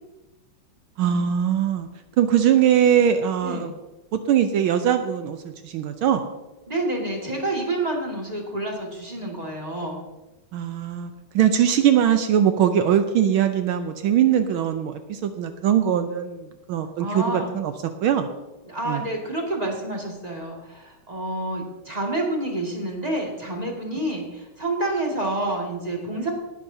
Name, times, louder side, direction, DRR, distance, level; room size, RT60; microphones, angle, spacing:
voice 1, 1.0-1.9 2.2-3.7 4.1-6.2 10.5-17.7 18.0-18.3 18.9-19.0, right 9 dB, 75° right, 8 dB, 1.5 m, -21 dB
voice 2, 6.7-10.1 17.0-17.6 18.6-26.3, right 1 dB, 20° right, -1 dB, 2.2 m, -28 dB
19.0 x 11.0 x 2.8 m, 1.1 s
omnidirectional pair, 2.4 m